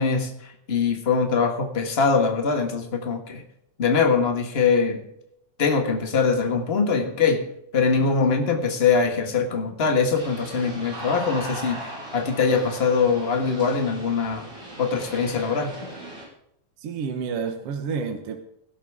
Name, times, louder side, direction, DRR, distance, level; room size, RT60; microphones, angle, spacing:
voice 1, 0.0-3.4 3.8-5.0 5.6-7.5 7.7-14.5 14.8-15.9, left 5 dB, 30° left, 5 dB, 1.1 m, -23 dB
sound 1, 10.1-16.2, right 1 dB, 25° right, 5.7 m, -38 dB
voice 2, 16.8-18.4, right 5 dB, 55° right, 5 dB, 1.9 m, -29 dB
17.5 x 12.0 x 3.7 m, 0.75 s
omnidirectional pair, 3.5 m